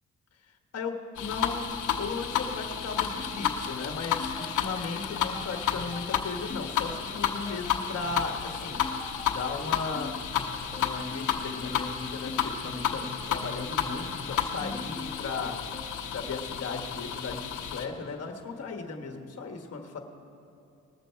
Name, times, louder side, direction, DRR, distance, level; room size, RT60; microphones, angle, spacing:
voice 1, 0.7-1.7 2.0-10.2 10.7-15.6 16.1-20.0, left 4 dB, 55° left, 3 dB, 1.4 m, -36 dB
sound 1, 1.2-17.9, left 8 dB, 85° left, 0.9 m, -32 dB
sound 2, 3.8-16.1, left 4 dB, 25° left, 1.4 m, -45 dB
20.0 x 7.0 x 4.6 m, 2.8 s
cardioid pair, 90°, 30 cm